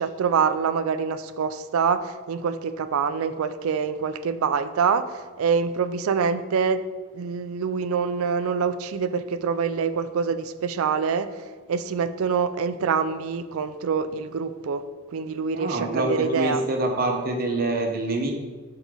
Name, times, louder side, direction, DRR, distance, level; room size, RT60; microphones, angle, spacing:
voice 1, 0.0-6.8 7.1-14.9 15.1-16.6, right 6 dB, 75° right, 12 dB, 0.4 m, -25 dB
voice 2, 15.5-18.3, right 2 dB, 40° right, 2 dB, 0.9 m, -25 dB
8.0 x 3.8 x 3.8 m, 1.4 s
head